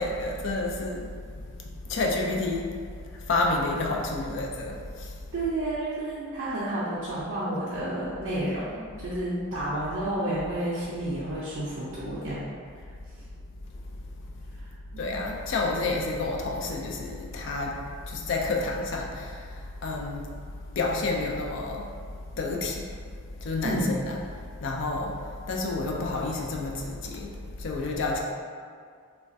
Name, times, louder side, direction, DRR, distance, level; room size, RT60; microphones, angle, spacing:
voice 1, 0.0-5.2 15.0-23.0 23.4-28.2, left 2 dB, 55° left, 0 dB, 0.3 m, -30 dB
voice 2, 5.3-12.5 14.6-15.1 23.6-24.0, right 1 dB, 60° right, -10 dB, 0.5 m, -31 dB
3.1 x 2.2 x 2.6 m, 2.1 s
head